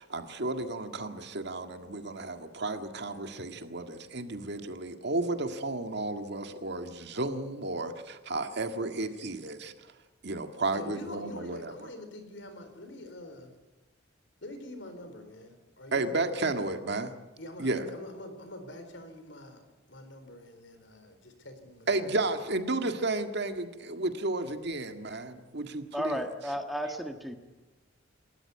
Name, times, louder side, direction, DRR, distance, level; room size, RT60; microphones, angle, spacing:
voice 1, 0.0-9.9 10.2-11.9 15.9-17.1 17.6-17.9 21.9-26.2, right 2 dB, 60° right, 7 dB, 1.9 m, -33 dB
voice 2, 10.7-13.5 14.4-16.6 17.0-19.6 19.9-21.9, left 1 dB, 65° left, 8 dB, 4.2 m, -45 dB
voice 3, 25.9-27.4, equal, ahead, 5 dB, 1.5 m, -33 dB
28.0 x 13.5 x 9.6 m, 1.1 s
head